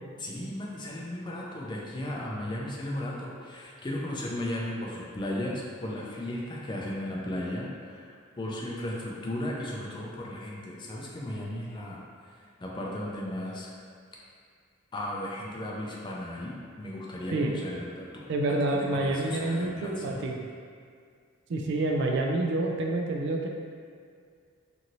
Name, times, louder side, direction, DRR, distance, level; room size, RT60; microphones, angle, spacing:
voice 1, 0.2-12.0 12.6-13.7 14.9-18.2 18.7-20.3, left 1 dB, 20° left, -3 dB, 0.3 m, -35 dB
voice 2, 18.3-20.5 21.5-23.5, right 2 dB, 60° right, 1 dB, 0.3 m, -28 dB
2.6 x 2.6 x 2.9 m, 2.2 s
head